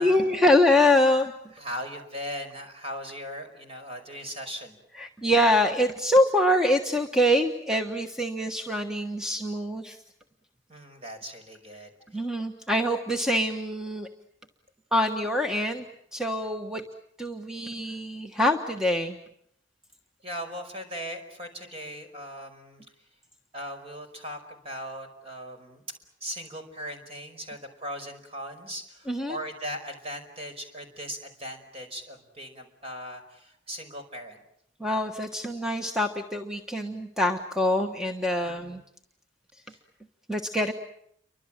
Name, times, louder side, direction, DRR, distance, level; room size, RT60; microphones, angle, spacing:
voice 1, 0.0-1.3 5.0-10.0 12.1-14.1 14.9-15.9 16.1-16.8 17.2-19.2 29.1-29.4 34.8-38.8 40.3-40.7, left 1 dB, 5° right, 3 dB, 1.3 m, -24 dB
voice 2, 1.6-4.8 10.7-12.3 17.9-18.0 20.2-23.1 23.5-25.8 26.2-34.4 38.4-38.7 39.7-39.8, equal, 30° right, 5 dB, 5.2 m, -39 dB
30.0 x 24.5 x 7.4 m, 0.73 s
head